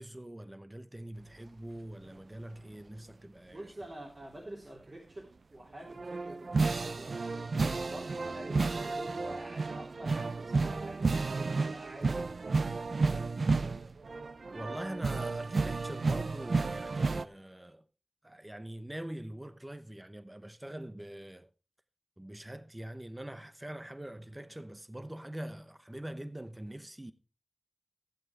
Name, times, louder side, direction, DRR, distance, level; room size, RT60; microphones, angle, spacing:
voice 1, 0.0-3.7 14.5-17.8 18.2-21.5 22.2-27.1, right 1 dB, 20° right, 0.8 m, -43 dB
voice 2, 3.5-12.3 12.9-13.3, right 1 dB, 45° right, 3.2 m, -47 dB
sound 1, 5.9-17.2, right 3 dB, 75° right, 0.6 m, -32 dB
14.0 x 7.6 x 4.7 m
cardioid pair, 45°, 0 cm